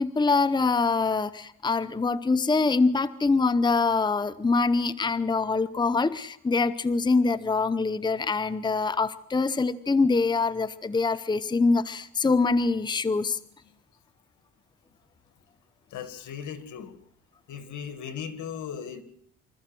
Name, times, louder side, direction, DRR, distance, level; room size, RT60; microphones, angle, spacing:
voice 1, 0.0-13.4, left 4 dB, 15° left, 15 dB, 0.8 m, -24 dB
voice 2, 15.9-16.9 17.5-19.0, left 7 dB, 75° left, 11 dB, 2.2 m, -37 dB
25.5 x 14.0 x 7.8 m, 0.70 s
cardioid pair, 90°, 30 cm